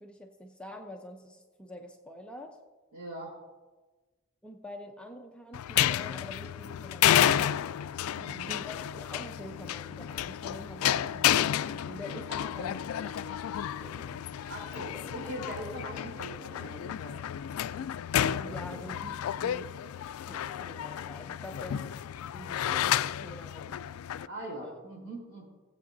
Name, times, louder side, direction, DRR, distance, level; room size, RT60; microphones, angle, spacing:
voice 1, 0.0-2.6 4.4-7.8 8.5-14.2 14.9-15.1 18.3-19.7 20.3-22.0 22.3-23.8 24.6-24.8, left 1 dB, 5° left, 2 dB, 0.6 m, -46 dB
voice 2, 2.9-3.4 8.1-8.5 14.5-17.2 18.4-18.7 24.3-25.5, right 1 dB, 75° right, -2 dB, 3.8 m, -41 dB
sound 1, 5.5-24.3, left 10 dB, 90° left, 0.3 m, -31 dB
18.5 x 7.9 x 2.6 m, 1.3 s
head